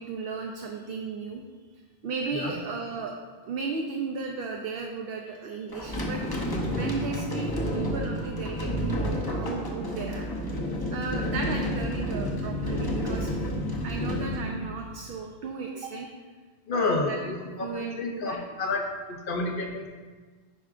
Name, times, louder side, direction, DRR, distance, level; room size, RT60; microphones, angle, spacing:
voice 1, 0.0-1.4 2.0-3.1 3.4-6.2 6.7-10.3 10.9-13.4 13.8-16.1 16.7-18.4, right 4 dB, 65° right, 1 dB, 0.8 m, -35 dB
sound 1, 5.7-15.2, equal, 25° left, 0.7 m, -30 dB
voice 2, 16.7-19.9, left 3 dB, 60° left, 2 dB, 0.9 m, -30 dB
10.0 x 4.7 x 2.5 m, 1.4 s
omnidirectional pair, 1.1 m